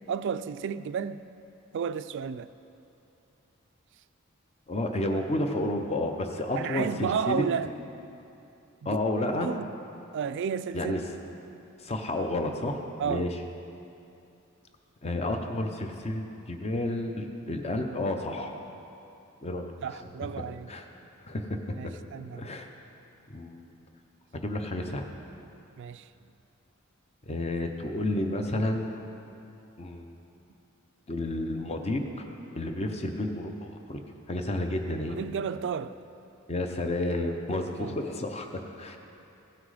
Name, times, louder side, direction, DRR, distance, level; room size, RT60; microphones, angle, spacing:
voice 1, 0.1-1.2 1.7-2.5 6.5-7.7 8.8-9.0 9.4-9.8 10.1-11.0 13.0-13.3 19.8-20.7 21.8-22.5 25.8-26.1 35.1-36.0 37.8-38.0, right 7 dB, 55° right, 0.3 m, -32 dB
voice 2, 4.7-7.4 8.8-9.5 10.7-11.0 11.8-13.3 15.0-18.6 19.4-19.7 20.7-20.9 21.2-21.6 22.3-22.7 23.3-23.7 24.3-25.1 27.3-29.1 29.8-30.2 31.1-32.3 32.5-34.0 34.3-35.2 36.5-38.5 38.8-39.0, left 1 dB, 30° left, 0.7 m, -31 dB
16.0 x 6.0 x 4.9 m
head